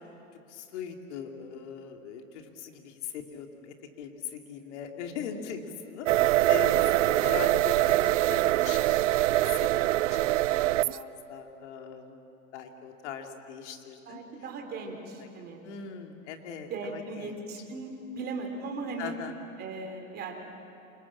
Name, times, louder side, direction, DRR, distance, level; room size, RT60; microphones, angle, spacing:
voice 1, 0.5-9.7 10.1-12.2 12.5-14.2 15.2-15.3 15.6-17.6 19.0-19.4, left 6 dB, 55° left, 4 dB, 3.1 m, -40 dB
sound 1, 6.1-11.0, right 16 dB, 60° right, 0.6 m, -24 dB
voice 2, 14.1-15.6 16.7-19.1 19.6-20.3, right 3 dB, 25° right, 2 dB, 3.9 m, -38 dB
29.5 x 27.0 x 7.5 m, 3.0 s
hypercardioid pair, 145°, 41 cm